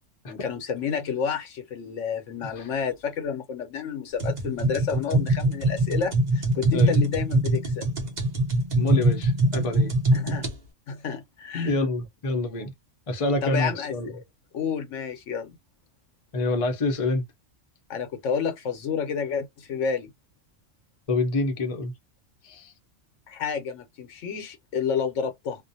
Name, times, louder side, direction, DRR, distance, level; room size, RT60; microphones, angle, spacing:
voice 1, 0.3-7.9 10.1-10.5 10.9-11.8 13.4-14.2 14.5-15.6 17.9-20.1 23.3-25.6, left 6 dB, 80° left, 1.0 m, -30 dB
sound 1, 4.2-10.5, right 1 dB, 40° right, 0.7 m, -23 dB
voice 2, 8.7-9.9 11.6-12.7 13.1-14.1 16.3-17.2 21.1-21.9 22.4-22.7, left 2 dB, 35° left, 0.6 m, -27 dB
2.5 x 2.1 x 2.6 m
omnidirectional pair, 1.3 m